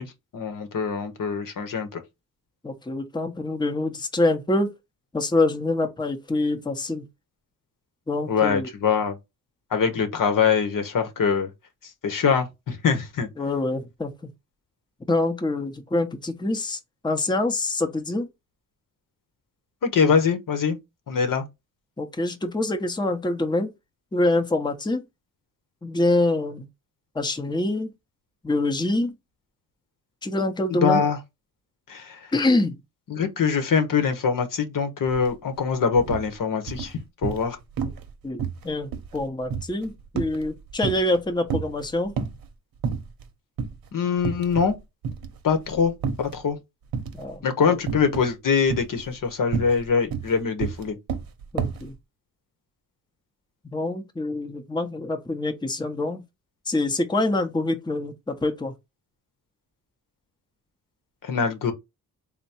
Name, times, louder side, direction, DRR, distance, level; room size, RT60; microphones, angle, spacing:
voice 1, 0.0-2.0 8.3-9.2 9.7-11.5 12.0-13.3 19.8-20.8 21.1-21.4 30.8-31.2 31.9-32.2 33.1-36.9 37.2-37.6 43.9-44.8 45.4-46.6 47.4-51.0 61.2-61.7, left 6 dB, 65° left, 0.9 m, -23 dB
voice 2, 2.6-4.7 5.1-7.0 8.1-8.7 13.4-14.1 15.1-16.8 17.0-18.3 22.0-23.7 24.1-25.0 25.8-26.7 27.1-27.9 28.4-29.1 30.2-31.0 32.3-32.8 37.8-37.9 38.2-42.1 47.1-47.4 51.5-51.9 53.7-56.2 56.7-58.7, left 2 dB, 10° left, 0.7 m, -25 dB
sound 1, 35.1-35.3 35.6-36.3 36.7-37.5 37.8-38.1 38.4-41.2 41.5-42.5 42.8-43.3 43.6-43.8 44.2-44.8 45.0-46.4 46.9-47.3 47.9-48.3 48.7-51.9, right 6 dB, 75° right, 0.8 m, -30 dB
3.5 x 2.2 x 4.1 m
cardioid pair, 90°, 36 cm